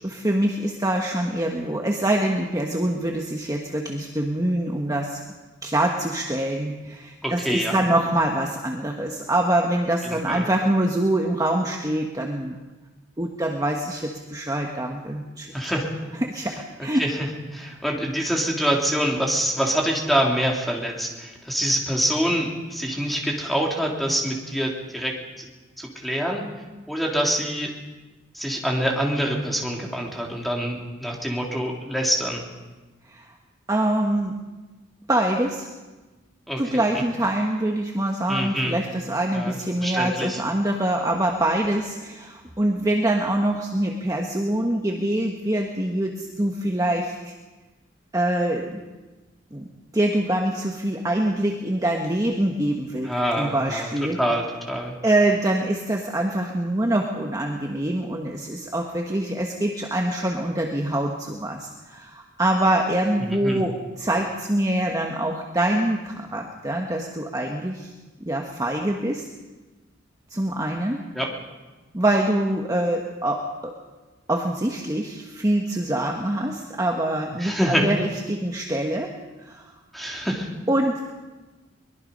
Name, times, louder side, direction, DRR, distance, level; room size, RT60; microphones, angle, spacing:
voice 1, 0.0-5.2 5.6-12.6 13.2-15.5 16.2-17.0 33.1-33.3 33.7-34.4 35.1-35.7 36.6-47.3 48.1-48.8 49.5-49.7 49.9-53.1 53.4-54.2 55.0-67.9 68.2-69.2 70.3-71.0 71.9-73.8 74.3-79.1 79.4-79.7 80.7-81.1, right 1 dB, 20° right, 1 dB, 1.4 m, -24 dB
voice 2, 7.2-7.8 10.1-10.4 15.5-15.9 17.0-25.5 25.8-26.4 26.9-27.7 28.3-32.4 36.5-36.6 38.3-38.7 39.3-40.4 53.0-53.9 54.2-54.9 63.2-63.6 71.1-71.3 77.4-77.9 79.9-80.5, equal, ahead, -1 dB, 3.3 m, -25 dB
23.5 x 21.5 x 5.4 m, 1.2 s
head